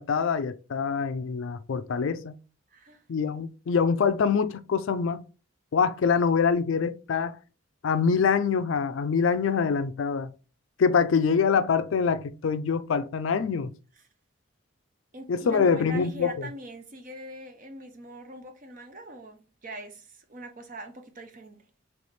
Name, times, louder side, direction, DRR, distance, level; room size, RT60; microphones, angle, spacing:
voice 1, 0.0-2.3 3.1-5.2 5.7-7.4 7.8-10.3 10.8-13.7 15.3-16.5, left 6 dB, 70° left, 0.4 m, -25 dB
voice 2, 2.7-3.0 14.0-14.1 15.1-21.6, right 1 dB, 40° right, 0.7 m, -42 dB
3.4 x 3.2 x 4.2 m
head